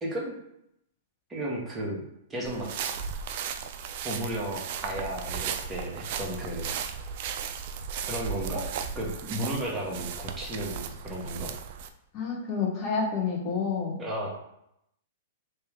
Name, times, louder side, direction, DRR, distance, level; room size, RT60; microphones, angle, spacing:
voice 1, 0.0-0.3 1.3-2.0 2.3-2.7 4.0-6.7 8.1-8.6 8.9-11.5 14.0-14.3, right 1 dB, 15° right, -3 dB, 1.2 m, -33 dB
sound 1, 2.4-11.9, right 7 dB, 55° right, 0.4 m, -36 dB
voice 2, 12.1-14.0, left 5 dB, 40° left, -1 dB, 1.1 m, -29 dB
3.2 x 3.0 x 3.6 m, 0.78 s
hypercardioid pair, 120°, 0 cm